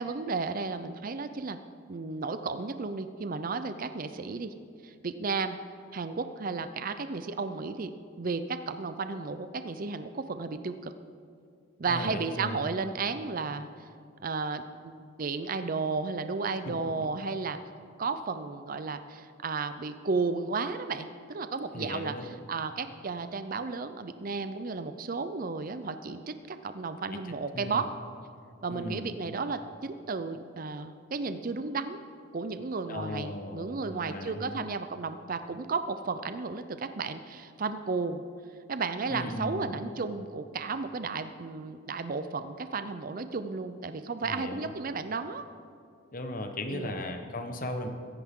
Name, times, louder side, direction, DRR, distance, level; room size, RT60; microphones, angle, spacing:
voice 1, 0.0-1.6 1.9-4.5 4.8-5.6 5.9-7.9 8.2-10.9 11.8-13.9 14.2-17.6 18.0-27.9 28.6-32.0 32.3-38.2 38.7-45.4 46.7-46.9, right 4 dB, 40° right, 10 dB, 0.5 m, -33 dB
voice 2, 11.9-12.7 16.6-17.1 21.7-22.3 27.1-27.2 27.5-27.9 28.7-29.2 32.9-34.6 39.1-39.8 44.2-44.7 46.1-47.9, left 1 dB, 40° left, 6 dB, 1.1 m, -37 dB
22.5 x 10.5 x 3.7 m, 2.4 s
head